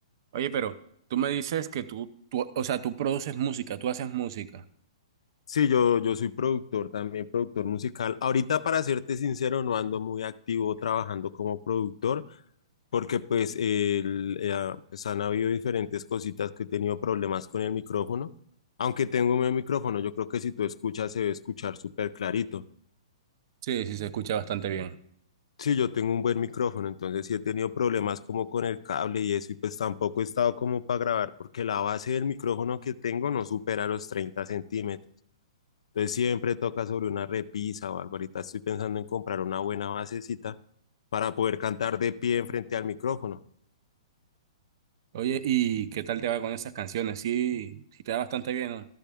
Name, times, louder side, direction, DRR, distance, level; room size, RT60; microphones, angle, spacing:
voice 1, 0.3-0.7 1.1-4.6 23.6-25.0 45.1-48.9, right 10 dB, 40° right, 14 dB, 0.5 m, -30 dB
voice 2, 5.5-12.2 12.9-18.3 18.8-22.6 25.6-35.0 36.0-40.6 41.1-43.4, left 8 dB, 75° left, 15 dB, 0.4 m, -29 dB
13.0 x 7.5 x 3.4 m, 0.70 s
hypercardioid pair, 165°, 3 cm